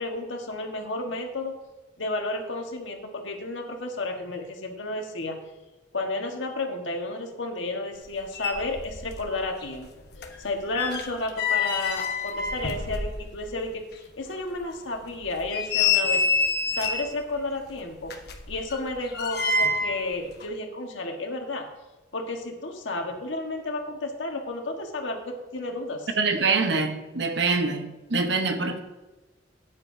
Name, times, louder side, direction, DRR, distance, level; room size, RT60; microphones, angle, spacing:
voice 1, 0.0-1.5 2.0-5.4 5.9-9.9 10.4-13.8 14.2-16.2 16.7-18.2 18.5-21.7 22.1-26.1, left 2 dB, 85° left, 2 dB, 1.5 m, -32 dB
sound 1, 8.1-8.2 8.3-9.3 9.6-13.6 13.9-14.0 14.6-14.7 15.2-17.2 18.0-20.0 20.3-20.5, left 4 dB, 55° left, 1.1 m, -27 dB
voice 2, 26.2-28.8, right 4 dB, 65° right, 6 dB, 1.0 m, -25 dB
13.0 x 9.6 x 2.7 m, 1.1 s
head